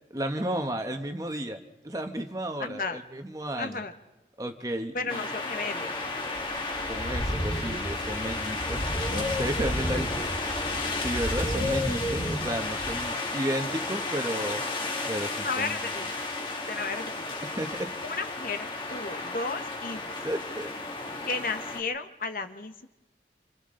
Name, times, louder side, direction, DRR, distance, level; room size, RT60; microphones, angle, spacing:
voice 1, 0.1-1.6 1.8-3.8 4.4-5.2 6.6-10.2 11.0-14.6 15.1-15.8 17.4-17.9 20.2-20.7 21.1-21.2, right 1 dB, 20° right, 6 dB, 1.1 m, -33 dB
voice 2, 2.6-3.0 3.6-3.9 4.9-5.9 15.4-16.1 16.7-17.1 18.0-20.2 21.3-22.9, left 4 dB, 50° left, 8 dB, 1.0 m, -33 dB
sound 1, 5.1-21.8, left 2 dB, 30° left, 1.9 m, -31 dB
28.0 x 27.0 x 3.8 m, 1.0 s
head